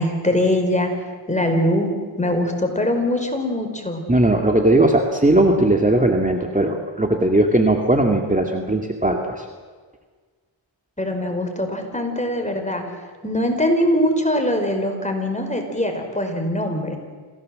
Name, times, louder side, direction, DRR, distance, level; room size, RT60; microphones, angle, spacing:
voice 1, 0.0-1.9 2.2-4.0 11.0-12.8 13.2-17.0, left 1 dB, 15° left, 4 dB, 4.9 m, -22 dB
voice 2, 4.1-9.5, right 1 dB, 15° right, 2 dB, 2.1 m, -18 dB
27.0 x 17.0 x 7.7 m, 1.5 s
cardioid pair, 55°, 47 cm